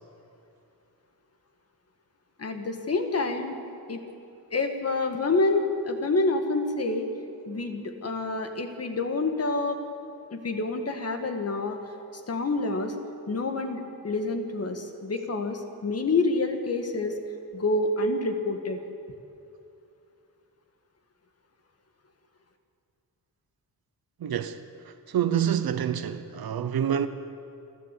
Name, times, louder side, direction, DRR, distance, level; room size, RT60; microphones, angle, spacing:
voice 1, 2.4-3.6 3.9-4.0 4.5-7.1 7.5-9.8 10.3-11.8 12.1-13.0 13.3-17.2 17.5-18.8, left 3 dB, 40° left, 1.9 m, -27 dB
voice 2, 24.2-24.6 24.8-27.1, right 9 dB, 75° right, 1.0 m, -27 dB
29.0 x 12.0 x 8.4 m
wide cardioid pair, 170°, 37 cm